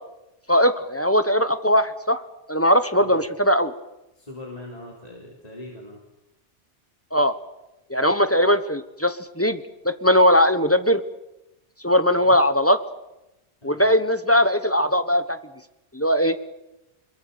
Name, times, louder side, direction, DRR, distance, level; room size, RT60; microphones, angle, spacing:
voice 1, 0.5-2.2 2.5-3.7 7.1-7.3 7.9-11.0 11.8-12.8 13.6-15.4 15.9-16.4, equal, 10° left, 10 dB, 1.1 m, -19 dB
voice 2, 4.2-6.0 12.1-12.4 13.6-13.9, left 1 dB, 30° left, -2 dB, 3.7 m, -40 dB
26.0 x 22.5 x 6.9 m, 0.94 s
omnidirectional pair, 1.2 m